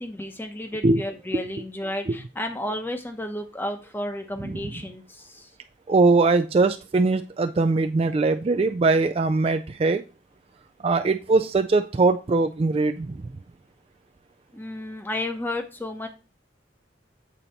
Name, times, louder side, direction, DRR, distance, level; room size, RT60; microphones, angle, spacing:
voice 1, 0.0-5.5 14.5-16.1, left 1 dB, 10° left, 6 dB, 0.8 m, -32 dB
voice 2, 5.9-10.0 10.8-13.2, right 3 dB, 30° right, 8 dB, 0.3 m, -21 dB
8.5 x 4.1 x 4.3 m, 0.31 s
head